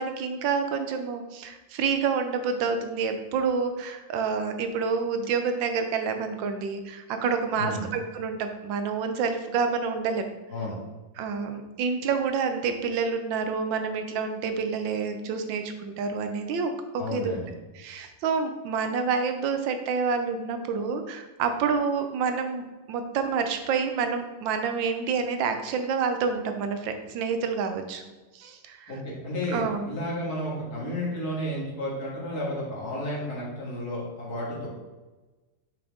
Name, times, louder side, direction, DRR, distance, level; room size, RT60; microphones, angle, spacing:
voice 1, 0.0-10.3 11.2-17.3 17.7-28.0 28.3-29.0 29.5-29.9, right 5 dB, 75° right, 7 dB, 1.3 m, -28 dB
voice 2, 7.5-7.9 10.5-10.7 17.0-17.5 28.9-34.7, left 1 dB, 50° left, -6 dB, 2.4 m, -32 dB
5.6 x 5.0 x 3.6 m, 1.2 s
omnidirectional pair, 2.1 m